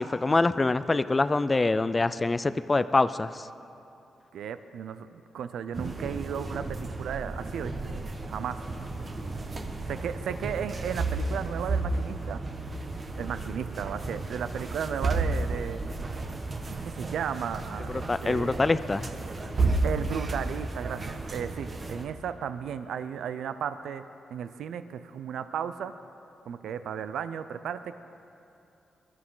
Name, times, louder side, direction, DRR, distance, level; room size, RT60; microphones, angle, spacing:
voice 1, 0.0-3.5 18.1-19.1, left 3 dB, 25° left, 13 dB, 0.4 m, -25 dB
voice 2, 4.3-7.9 8.3-8.6 9.9-12.4 13.2-15.8 16.7-18.8 19.8-24.1 24.3-25.9 26.5-27.9, right 8 dB, 85° right, 11 dB, 0.5 m, -34 dB
sound 1, 5.7-22.1, right 3 dB, 40° right, 1.4 m, -33 dB
22.5 x 12.5 x 3.9 m, 2.7 s
cardioid pair, 80°, 0 cm